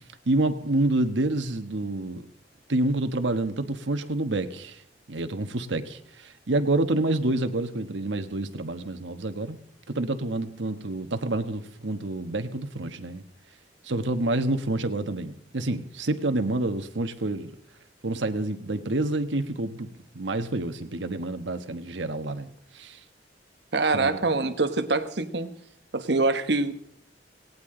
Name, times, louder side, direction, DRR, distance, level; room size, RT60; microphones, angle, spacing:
voice 1, 0.3-2.2 2.7-4.8 5.1-9.6 9.9-13.2 13.8-17.5 18.0-19.9 20.1-22.5 22.7-23.0 23.9-24.2, right 2 dB, 90° right, 1.3 m, -28 dB
voice 2, 23.7-25.5 25.9-26.7, right 3 dB, 65° right, 1.2 m, -24 dB
19.0 x 17.5 x 3.8 m
head